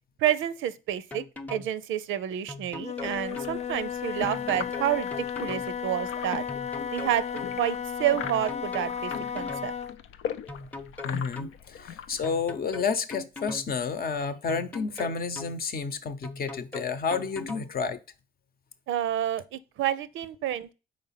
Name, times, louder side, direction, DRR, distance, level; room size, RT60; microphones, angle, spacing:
voice 1, 0.2-1.2 1.5-6.4 6.9-7.3 7.6-9.7 18.9-20.7, right 11 dB, 85° right, 0.6 m, -29 dB
sound 1, 1.1-1.7 2.5-3.5 4.2-5.7 6.5-7.5 8.2-9.7 10.5-11.5 12.2-13.7 14.5-15.5 16.2-17.7, left 2 dB, 10° left, 0.7 m, -40 dB
Wind instrument woodwind instrument, 2.8-10.0, left 8 dB, 35° left, 0.4 m, -34 dB
sound 2, 3.0-12.3, left 8 dB, 85° left, 0.6 m, -41 dB
voice 2, 11.0-18.0, left 5 dB, 50° left, 0.8 m, -30 dB
5.1 x 4.1 x 5.6 m
cardioid pair, 90°, 20 cm